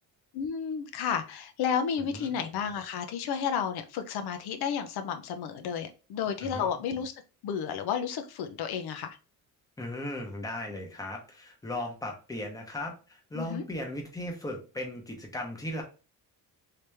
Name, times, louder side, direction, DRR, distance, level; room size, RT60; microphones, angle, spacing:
voice 1, 0.3-7.1 7.4-9.2 13.3-13.6, left 7 dB, 85° left, 7 dB, 0.7 m, -32 dB
voice 2, 6.4-6.7 9.8-15.8, left 1 dB, 10° left, 1 dB, 0.8 m, -37 dB
3.3 x 2.9 x 3.3 m, 0.34 s
cardioid pair, 160°, 37 cm